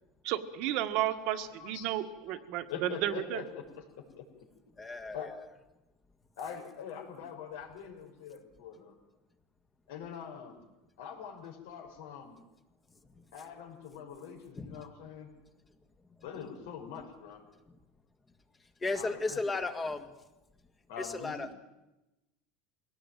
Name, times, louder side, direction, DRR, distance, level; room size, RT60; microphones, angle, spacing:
voice 1, 0.2-3.4, right 13 dB, 60° right, 9 dB, 1.7 m, -33 dB
voice 2, 1.0-1.9 2.3-2.4 2.7-4.3 5.1-5.3 6.4-9.0 9.9-10.6 11.0-12.4 13.3-15.3 16.2-17.4 18.9-19.5 20.9-21.5, left 7 dB, 80° left, 1 dB, 5.5 m, -44 dB
voice 3, 4.8-5.4 14.6-14.8 18.8-20.1 21.0-21.5, left 3 dB, 15° left, 8 dB, 1.8 m, -35 dB
23.0 x 17.5 x 9.3 m, 0.98 s
supercardioid pair, 145°, 0 cm